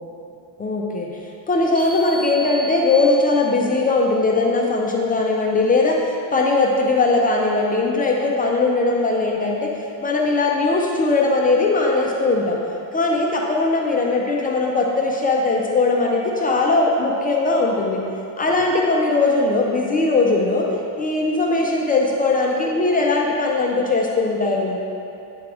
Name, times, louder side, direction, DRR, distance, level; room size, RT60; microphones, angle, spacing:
voice 1, 0.6-1.1 1.5-9.7 10.0-12.6 12.9-18.0 18.4-20.7 21.0-24.8, left 3 dB, 20° left, -1 dB, 0.3 m, -19 dB
sound 1, 1.7-3.6, equal, 45° right, 1.5 m, -34 dB
8.4 x 3.6 x 4.8 m, 2.8 s
cardioid pair, 155°, 46 cm